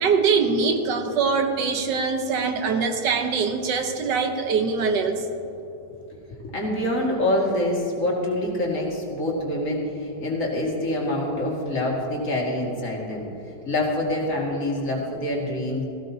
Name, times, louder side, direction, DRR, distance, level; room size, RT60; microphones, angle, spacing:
voice 1, 0.0-5.3, right 5 dB, 80° right, 5 dB, 1.6 m, -23 dB
voice 2, 6.4-13.3 13.6-15.8, left 1 dB, 45° left, -3 dB, 2.5 m, -26 dB
17.5 x 15.0 x 2.8 m, 2.9 s
omnidirectional pair, 1.9 m